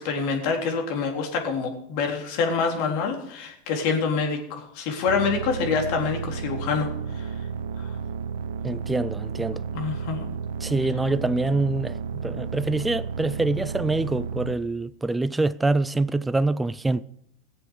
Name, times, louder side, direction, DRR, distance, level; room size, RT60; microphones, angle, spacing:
voice 1, 0.0-6.9 7.2-7.3 9.5-10.3, left 5 dB, 60° left, 3.7 m, -26 dB
sound 1, 5.1-14.6, right 6 dB, 80° right, 0.9 m, -32 dB
voice 2, 8.6-9.6 10.6-12.0 12.2-17.0, right 2 dB, 10° right, 0.5 m, -25 dB
19.0 x 7.6 x 6.6 m
hypercardioid pair, 105°, 0 cm